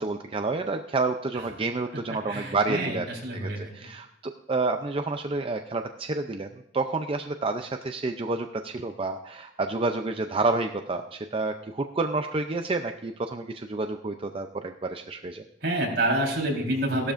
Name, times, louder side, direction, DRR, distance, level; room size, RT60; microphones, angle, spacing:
voice 1, 0.0-6.5 6.7-15.4, right 3 dB, 30° right, 6 dB, 0.5 m, -29 dB
voice 2, 2.3-3.6 15.6-17.1, right 1 dB, 65° right, -1 dB, 4.0 m, -27 dB
16.0 x 12.0 x 2.5 m, 0.81 s
head